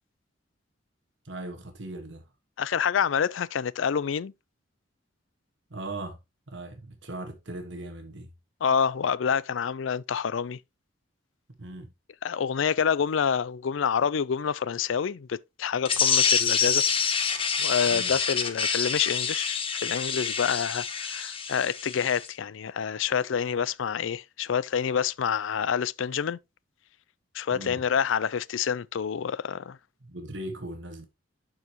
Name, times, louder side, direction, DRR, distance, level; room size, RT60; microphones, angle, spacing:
voice 1, 1.2-2.2 5.7-6.2 6.5-8.3 11.6-11.9 17.9-18.1 27.5-27.8 30.0-31.1, right 1 dB, 65° right, 1.5 m, -39 dB
voice 2, 2.6-4.3 8.6-10.6 12.2-17.2 17.6-26.4 27.3-29.8, left 7 dB, 75° left, 0.4 m, -27 dB
sound 1, 15.8-22.3, left 6 dB, 30° left, 1.0 m, -27 dB
12.0 x 4.8 x 2.9 m
head